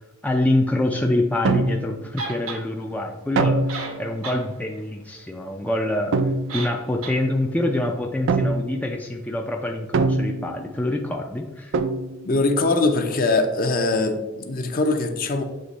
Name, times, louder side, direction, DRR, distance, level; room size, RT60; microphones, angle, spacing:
voice 1, 0.2-3.6 4.0-6.1 6.5-11.8, left 1 dB, 5° left, 1 dB, 0.4 m, -25 dB
sound 1, 1.4-2.1 3.4-4.1 6.1-6.7 8.3-8.9 9.9-10.7 11.7-12.3, right 3 dB, 60° right, 0.4 m, -23 dB
sound 2, 2.2-2.6 3.4-3.5 3.7-4.4 4.8-4.9 6.5-6.8 7.0-7.2, right 4 dB, 80° right, 1.0 m, -32 dB
voice 2, 12.2-15.4, left 2 dB, 40° left, 5 dB, 0.7 m, -22 dB
7.7 x 3.0 x 4.1 m, 1.1 s
head